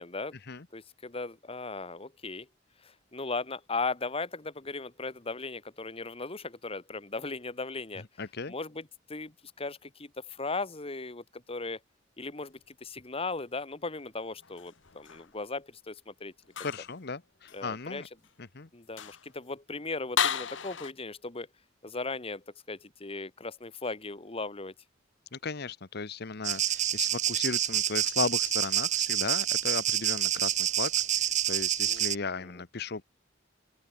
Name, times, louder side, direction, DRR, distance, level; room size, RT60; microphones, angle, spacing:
voice 1, 0.0-0.3 0.7-2.5 2.8-8.0 8.5-11.8 12.2-16.3 17.5-18.0 18.7-21.5 21.8-24.7 31.9-32.5, left 3 dB, 30° left, 1.5 m, -37 dB
voice 2, 8.2-8.5 16.6-18.1 18.4-18.7 25.3-33.0, left 4 dB, 55° left, 1.0 m, -36 dB
sound 1, 14.4-15.3 16.5-17.0 17.5-17.6 18.2-18.3 18.8-19.3 20.2-20.9, left 8 dB, 70° left, 1.3 m, -33 dB
sound 2, 26.4-32.2, right 11 dB, 40° right, 0.6 m, -28 dB
open air
head